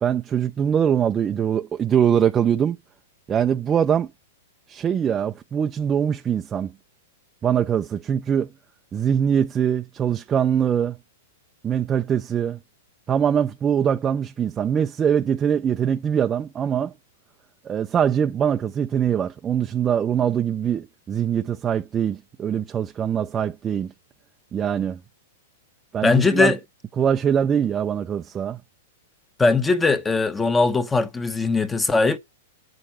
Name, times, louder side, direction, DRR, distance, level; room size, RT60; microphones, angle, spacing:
voice 1, 0.0-2.8 3.3-4.1 4.7-6.7 7.4-8.5 8.9-11.0 11.6-12.6 13.1-16.9 17.6-23.9 24.5-25.0 25.9-26.5 27.0-28.6, right 8 dB, 20° right, 0.6 m, -22 dB
voice 2, 26.0-26.6 29.4-32.2, left 4 dB, 10° left, 1.0 m, -20 dB
8.8 x 6.5 x 7.3 m
hypercardioid pair, 130°, 0 cm